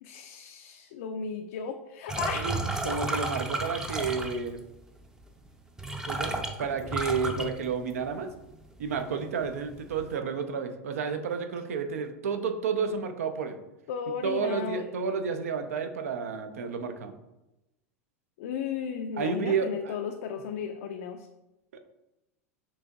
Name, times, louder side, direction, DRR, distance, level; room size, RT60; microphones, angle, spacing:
voice 1, 0.0-3.0 13.9-14.9 18.4-21.3, left 6 dB, 60° left, 5 dB, 0.3 m, -35 dB
sound 1, 2.1-4.6 5.5-5.6 5.8-8.2 8.5-9.0 9.4-10.0, right 2 dB, 5° right, 0.5 m, -32 dB
voice 2, 2.8-4.6 6.1-8.3 8.8-13.6 14.2-17.1 19.2-19.9, right 5 dB, 70° right, 8 dB, 0.5 m, -31 dB
6.1 x 2.9 x 2.3 m, 0.94 s
hypercardioid pair, 90°, 8 cm